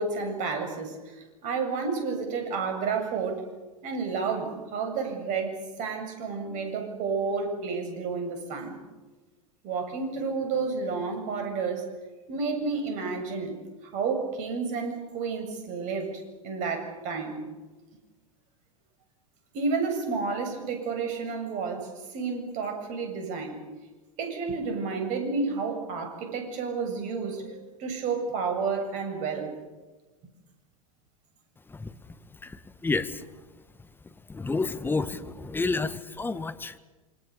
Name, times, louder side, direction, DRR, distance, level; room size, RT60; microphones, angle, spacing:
voice 1, 0.0-3.5 3.8-8.7 9.6-11.9 12.3-13.5 13.9-17.4 19.5-23.6 24.2-29.5, right 4 dB, 45° right, 5 dB, 7.7 m, -31 dB
voice 2, 31.7-32.1 32.4-33.3 34.3-36.8, left 3 dB, 10° left, 11 dB, 1.7 m, -30 dB
28.0 x 25.5 x 7.0 m, 1.2 s
figure-of-eight pair, 90°, 18 cm